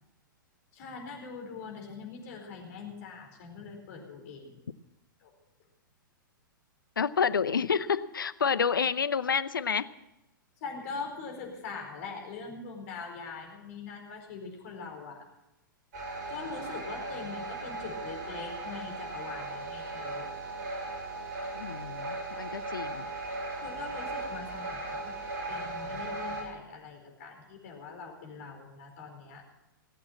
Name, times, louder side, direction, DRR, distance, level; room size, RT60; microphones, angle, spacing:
voice 1, 0.7-4.6 5.2-5.3 10.6-15.2 16.3-20.4 23.6-25.2 25.5-29.4, left 4 dB, 45° left, 2 dB, 4.6 m, -42 dB
voice 2, 7.0-9.9 21.5-23.1, left 6 dB, 70° left, 16 dB, 0.7 m, -29 dB
sound 1, 15.9-26.4, right 2 dB, 50° right, 5.5 m, -37 dB
19.0 x 8.6 x 7.3 m, 0.97 s
figure-of-eight pair, 105°, 11 cm